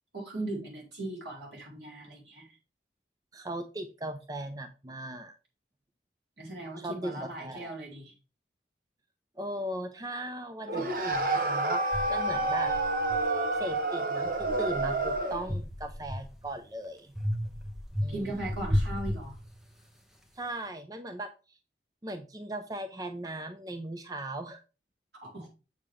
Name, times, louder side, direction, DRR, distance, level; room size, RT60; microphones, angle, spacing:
voice 1, 0.1-2.6 6.4-8.1 18.1-19.3 25.2-25.5, right 1 dB, 85° right, -3 dB, 4.3 m, -38 dB
voice 2, 3.3-5.3 6.8-7.7 9.4-12.7 13.6-17.1 18.0-18.4 20.3-21.6 22.0-24.6, right 1 dB, 20° right, 8 dB, 0.6 m, -38 dB
sound 1, 10.7-15.5, right 2 dB, 50° right, 1.1 m, -29 dB
sound 2, 11.1-11.2 11.9-13.8 14.2-16.6 17.2-19.9, equal, 5° right, 0.9 m, -34 dB
7.9 x 6.9 x 3.5 m, 0.32 s
head